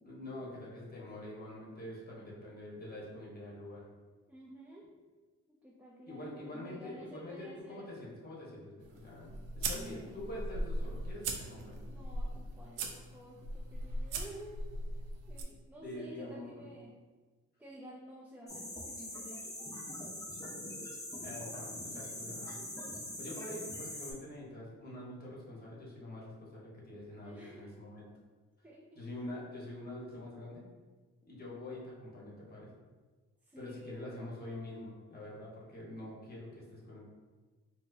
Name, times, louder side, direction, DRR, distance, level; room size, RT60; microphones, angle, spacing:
voice 1, 0.0-3.8 6.1-11.8 15.8-16.7 21.2-22.6 23.2-28.1 28.9-30.6 31.3-32.7 33.6-37.1, left 1 dB, 30° left, -5 dB, 1.2 m, -45 dB
voice 2, 4.3-4.9 5.5-7.9 9.6-10.2 11.8-14.6 15.3-16.9 17.6-20.0 27.2-27.7 28.6-29.0 33.4-34.9, equal, 5° right, -5 dB, 0.4 m, -52 dB
sound 1, 8.8-15.4, right 2 dB, 80° right, 0.5 m, -39 dB
sound 2, 18.5-24.1, left 1 dB, 10° left, 0.8 m, -43 dB
4.2 x 2.1 x 2.7 m, 1.4 s
cardioid pair, 90°, 30 cm